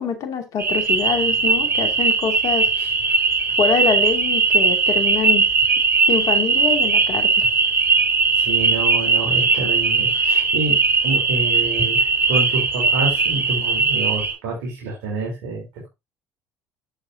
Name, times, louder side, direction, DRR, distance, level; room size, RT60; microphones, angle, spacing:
voice 1, 0.0-2.7 3.6-5.5 6.1-7.5, left 6 dB, 55° left, 2.7 m, -24 dB
sound 1, 0.6-14.3, right 4 dB, 35° right, 6.3 m, -19 dB
voice 2, 8.4-10.8 11.0-12.0 12.3-15.9, right 3 dB, 80° right, 4.1 m, -27 dB
10.0 x 7.3 x 2.8 m
supercardioid pair, 75°, 7 cm